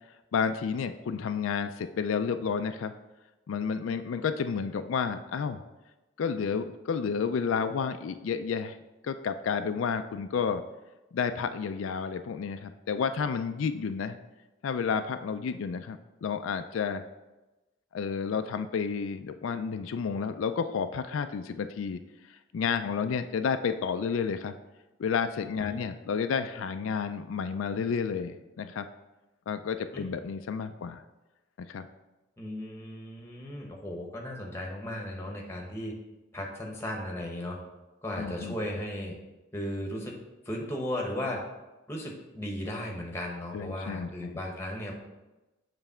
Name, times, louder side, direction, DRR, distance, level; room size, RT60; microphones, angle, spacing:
voice 1, 0.3-2.9 3.5-5.6 6.2-8.8 9.0-10.6 11.1-14.2 14.6-17.0 17.9-22.0 22.3-24.5 25.0-28.9 29.5-31.0 31.7-31.9 38.2-38.6 43.5-44.3, left 6 dB, 85° left, 9 dB, 0.4 m, -31 dB
voice 2, 32.4-35.9 36.3-37.6 38.0-39.1 39.5-40.2 40.4-41.4 41.9-45.0, left 1 dB, 15° left, -1 dB, 1.0 m, -36 dB
7.0 x 3.3 x 5.5 m, 1.0 s
head